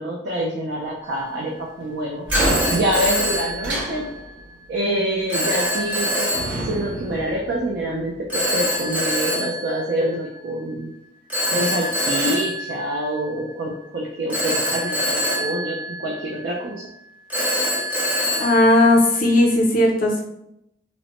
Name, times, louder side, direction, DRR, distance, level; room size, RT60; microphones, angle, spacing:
voice 1, 0.0-2.3 2.7-4.1 4.7-6.3 6.6-10.9 11.4-16.9, right 1 dB, 65° right, -1 dB, 0.4 m, -26 dB
Telephone, 1.0-1.4 2.3-4.3 5.3-7.0 8.3-10.5 11.3-13.6 14.3-16.6 17.3-19.5, equal, 10° right, 0.6 m, -25 dB
sound 1, 2.2-4.5 5.6-6.0 6.3-8.1, right 1 dB, 80° right, 1.0 m, -27 dB
voice 2, 18.4-20.2, left 1 dB, 45° left, -1 dB, 0.5 m, -16 dB
2.9 x 2.1 x 2.9 m, 0.80 s
head